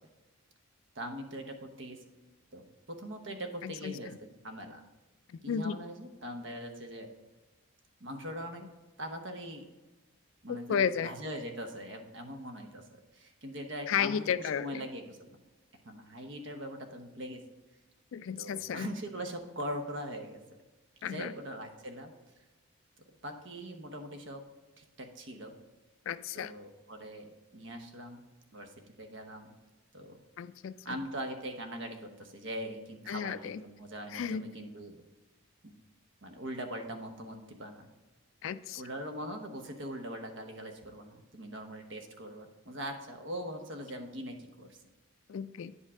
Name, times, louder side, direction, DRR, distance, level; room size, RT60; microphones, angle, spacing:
voice 1, 0.9-2.0 2.5-4.8 5.4-7.1 8.0-8.6 9.0-9.6 10.4-15.3 15.8-17.4 18.4-20.4 21.0-22.1 23.2-24.5 24.8-25.5 26.3-28.2 28.5-28.7 29.0-29.5 29.9-30.2 30.8-35.0 36.2-37.9 38.7-44.8, equal, 60° right, 5 dB, 1.0 m, -41 dB
voice 2, 3.6-3.9 5.3-5.8 10.5-11.1 13.9-14.8 18.1-18.9 21.0-21.3 26.1-26.5 30.4-31.0 33.1-33.6 34.1-34.4 38.4-38.8 45.3-45.7, left 7 dB, 70° left, 14 dB, 0.3 m, -33 dB
9.6 x 5.4 x 3.6 m, 1.2 s
head